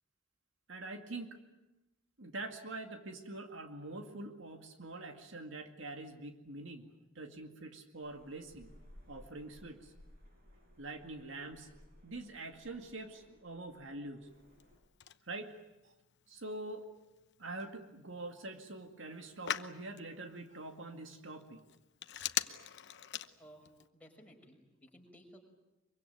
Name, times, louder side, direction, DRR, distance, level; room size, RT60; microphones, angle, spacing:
voice 1, 0.7-1.4 2.2-8.7 9.1-9.9 10.8-11.7 12.0-14.3 15.3-15.5 15.8-15.9 16.3-16.9 17.4-21.6, right 2 dB, 70° right, 5 dB, 2.1 m, -45 dB
sound 1, 8.0-14.8, left 1 dB, 50° right, 7.4 m, -60 dB
Telephone, 14.3-23.9, left 11 dB, 60° left, 0.9 m, -44 dB
voice 2, 23.9-25.4, equal, 5° left, 0 dB, 5.8 m, -57 dB
24.0 x 24.0 x 9.3 m, 1.0 s
head